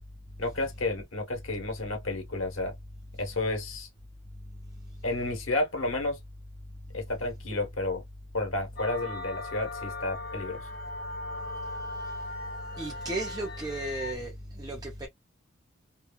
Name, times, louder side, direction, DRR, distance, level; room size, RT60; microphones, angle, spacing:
voice 1, 0.4-2.7 3.2-3.9 5.0-6.2 6.9-8.0 8.3-10.7, left 2 dB, 90° left, 1.0 m, -31 dB
sound 1, 8.8-14.1, left 2 dB, 50° left, 0.7 m, -38 dB
voice 2, 12.8-14.3 14.6-15.1, right 2 dB, 20° right, 0.5 m, -34 dB
3.0 x 2.3 x 2.3 m
head